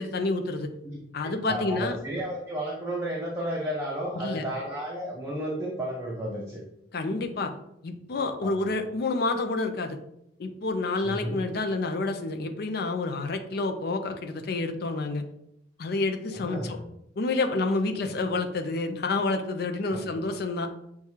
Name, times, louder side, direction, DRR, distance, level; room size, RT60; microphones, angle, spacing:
voice 1, 0.0-0.7 1.1-2.0 4.1-4.4 6.9-7.5 7.8-10.0 10.4-15.2 15.8-16.8 17.2-20.7, left 3 dB, 60° left, 6 dB, 0.5 m, -29 dB
voice 2, 0.8-6.6 8.4-8.7 11.0-11.4 16.3-16.8 18.0-18.2 19.9-20.1, right 1 dB, 15° right, -3 dB, 0.6 m, -33 dB
6.3 x 2.3 x 2.8 m, 0.78 s
head